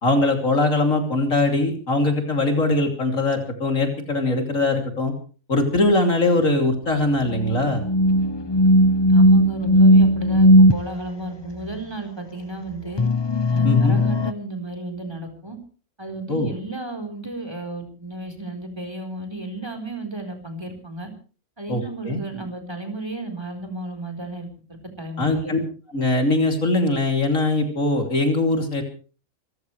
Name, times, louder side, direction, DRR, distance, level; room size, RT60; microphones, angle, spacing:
voice 1, 0.0-5.1 5.5-7.8 13.6-14.0 16.3-16.5 21.7-22.2 25.2-25.6 25.9-28.8, left 2 dB, 65° left, 3 dB, 3.4 m, -21 dB
sound 1, 7.3-10.8 13.0-14.3, equal, 30° left, 0.5 m, -16 dB
voice 2, 9.1-13.0 13.5-15.6 16.0-21.1 21.6-25.5, right 2 dB, 20° right, 5 dB, 4.2 m, -33 dB
26.5 x 15.0 x 3.2 m, 0.38 s
omnidirectional pair, 1.5 m